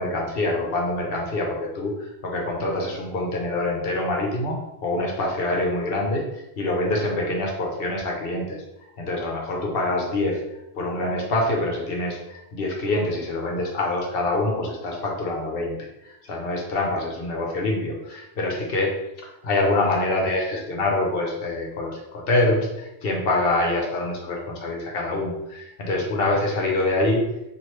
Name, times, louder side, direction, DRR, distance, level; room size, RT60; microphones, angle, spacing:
voice 1, 0.0-6.2 6.6-8.6 9.0-10.4 10.7-15.8 16.2-19.0 19.4-27.2, left 2 dB, 65° left, 0 dB, 0.9 m, -25 dB
2.9 x 2.5 x 3.1 m, 0.90 s
omnidirectional pair, 1.1 m